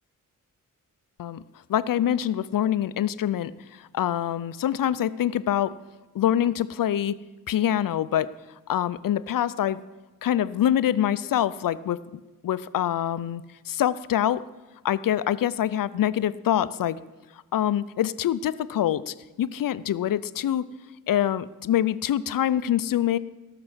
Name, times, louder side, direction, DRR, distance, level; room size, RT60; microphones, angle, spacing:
voice 1, 1.7-3.5 3.9-5.8 6.1-7.2 7.5-8.3 8.7-9.8 10.2-12.0 12.4-14.4 14.8-17.0 17.5-20.7 21.1-23.2, left 11 dB, 90° left, 16 dB, 0.6 m, -25 dB
17.0 x 6.8 x 7.9 m, 1.2 s
wide cardioid pair, 90°, 32 cm